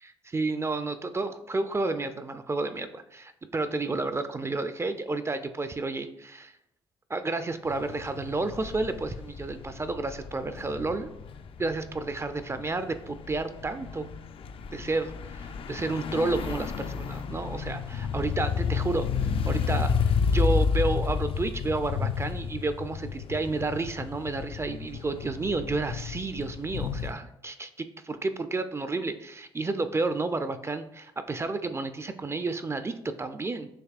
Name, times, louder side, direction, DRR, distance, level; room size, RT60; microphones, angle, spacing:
voice 1, 0.0-6.5 7.1-11.1 11.6-14.1 14.7-19.1 19.5-33.7, right 3 dB, 25° right, 10 dB, 0.4 m, -31 dB
sound 1, 7.7-27.1, left 6 dB, 55° left, 0.4 m, -31 dB
6.8 x 2.7 x 2.4 m, 0.81 s
supercardioid pair, 55°, 11 cm